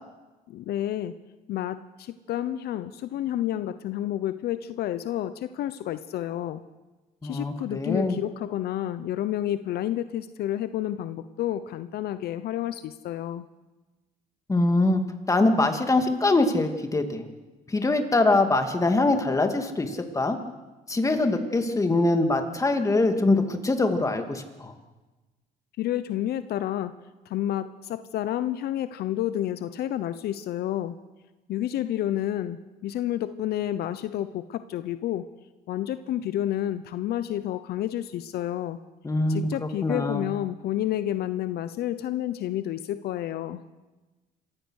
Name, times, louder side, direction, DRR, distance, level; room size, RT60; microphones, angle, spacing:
voice 1, 0.5-1.1 1.5-6.6 7.2-13.4 25.8-27.0 27.3-31.0 31.5-35.2 35.7-38.8 39.3-43.6, left 12 dB, 70° left, 12 dB, 0.9 m, -30 dB
voice 2, 7.2-8.1 14.5-15.0 15.3-17.2 17.7-20.4 20.9-24.7 39.0-39.5 39.8-40.3, left 2 dB, 20° left, 6 dB, 2.4 m, -23 dB
27.5 x 15.0 x 6.5 m, 1.2 s
cardioid pair, 110°, 17 cm